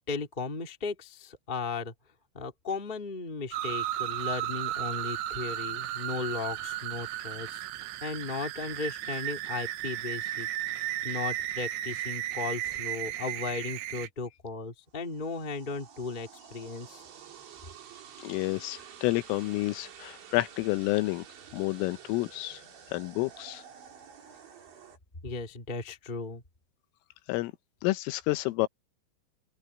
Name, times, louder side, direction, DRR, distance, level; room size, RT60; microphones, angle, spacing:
voice 1, 0.0-1.9 2.3-7.6 8.0-10.5 11.0-17.0 25.2-26.4, left 4 dB, 20° left, 1.2 m, -36 dB
sound 1, 3.5-14.1, right 13 dB, 75° right, 3.5 m, -34 dB
sound 2, 14.9-25.0, right 8 dB, 60° right, 5.7 m, -50 dB
voice 2, 18.2-21.2 21.5-22.6 22.9-23.6 27.3-27.5 27.8-28.7, left 20 dB, 80° left, 3.4 m, -29 dB
open air
omnidirectional pair, 6.0 m